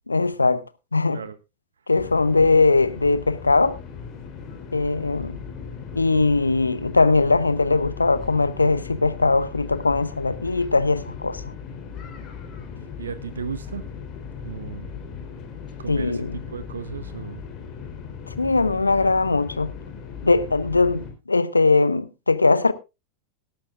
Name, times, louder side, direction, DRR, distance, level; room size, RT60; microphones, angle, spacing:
voice 1, 0.1-0.6 0.9-1.2 1.9-3.8 4.7-5.4 6.0-11.4 15.9-16.4 18.4-19.7 20.2-22.7, left 3 dB, 80° left, 0.8 m, -20 dB
sound 1, 1.9-21.1, left 6 dB, 35° left, 3.8 m, -38 dB
voice 2, 13.0-13.8 14.4-15.2 15.8-17.4, right 6 dB, 70° right, 0.8 m, -35 dB
17.5 x 12.5 x 2.5 m
figure-of-eight pair, 90°, 0 cm